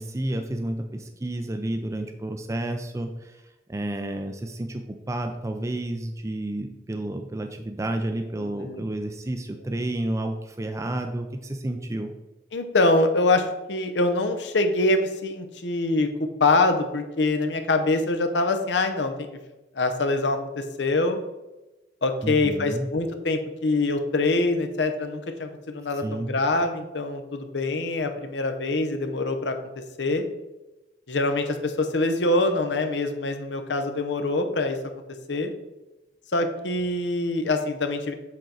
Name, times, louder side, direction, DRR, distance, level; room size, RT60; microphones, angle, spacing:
voice 1, 0.0-3.4 3.7-12.1 22.2-22.9 26.0-26.3, right 1 dB, 15° right, 5 dB, 0.4 m, -31 dB
voice 2, 8.4-8.8 12.5-16.1 16.4-19.3 19.7-21.2 22.0-29.6 30.0-30.2 31.1-34.8 35.3-35.5 36.3-38.1, left 2 dB, 85° left, 7 dB, 0.8 m, -24 dB
7.6 x 4.3 x 3.9 m, 1.0 s
head